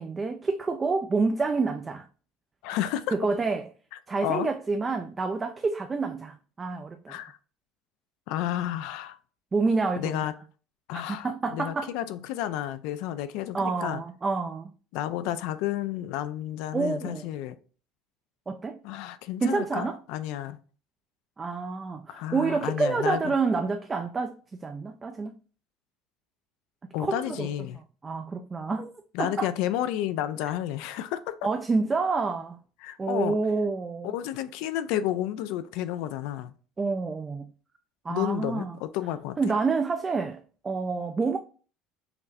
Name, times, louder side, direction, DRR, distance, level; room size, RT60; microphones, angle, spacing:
voice 1, 0.0-2.1 3.1-3.7 4.1-7.2 9.5-10.3 10.9-11.9 13.5-14.7 16.7-17.3 18.5-18.8 19.4-20.0 21.4-24.4 24.6-25.3 27.0-27.5 28.0-28.9 29.2-29.5 31.4-32.6 33.0-34.1 36.8-37.5 38.0-38.8 39.4-41.4, right 4 dB, 20° right, 0.3 m, -28 dB
voice 2, 2.6-3.1 4.2-4.5 7.1-7.4 8.3-9.2 10.0-10.3 10.9-14.0 14.9-17.6 18.8-20.6 22.1-23.3 26.9-27.8 29.1-31.3 32.8-33.4 34.0-36.5 38.1-39.5, left 12 dB, 75° left, 0.3 m, -31 dB
5.7 x 2.1 x 2.6 m
supercardioid pair, 115°, 0 cm